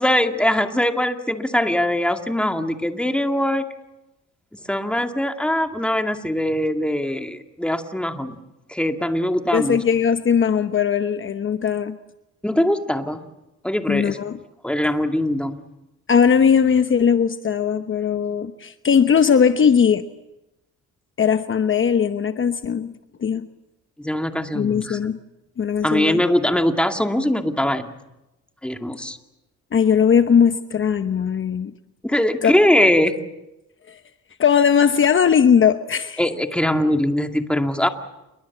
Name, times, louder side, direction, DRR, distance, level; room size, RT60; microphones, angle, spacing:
voice 1, 0.0-3.6 4.7-8.4 8.7-9.8 12.4-13.2 13.6-14.2 14.6-15.6 24.0-25.0 25.8-27.9 28.6-29.2 32.0-33.2 36.2-37.9, left 1 dB, 5° left, 5 dB, 2.3 m, -21 dB
voice 2, 9.5-11.9 13.9-14.4 16.1-20.0 21.2-22.9 23.2-23.5 24.5-25.2 25.6-26.2 29.7-31.7 32.4-32.9 33.9-34.0 34.4-36.2, left 7 dB, 40° left, 9 dB, 1.0 m, -19 dB
28.5 x 22.5 x 7.3 m, 0.95 s
cardioid pair, 90°, 30 cm